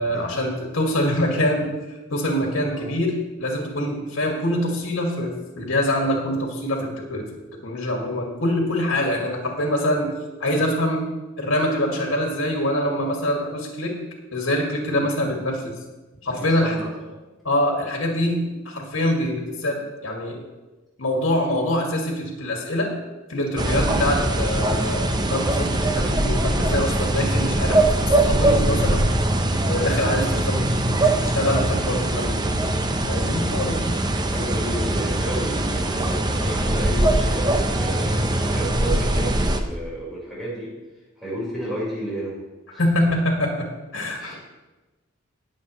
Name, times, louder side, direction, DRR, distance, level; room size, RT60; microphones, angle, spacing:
voice 1, 0.0-1.7 2.1-7.2 7.6-10.1 10.4-11.1 11.4-14.0 14.3-15.8 16.2-16.8 17.4-20.4 21.0-22.9 23.3-27.8 28.1-29.1 29.6-30.6 31.0-32.6 33.1-33.9 42.8-44.3, left 1 dB, 70° left, 0 dB, 2.1 m, -24 dB
voice 2, 16.3-16.9 30.1-30.3 34.2-40.7 41.2-42.4 42.7-42.8 44.2-44.4, equal, ahead, -9 dB, 4.5 m, -32 dB
sound 1, 23.6-39.6, right 1 dB, 20° right, 0.7 m, -22 dB
20.0 x 7.5 x 3.1 m, 1.1 s
head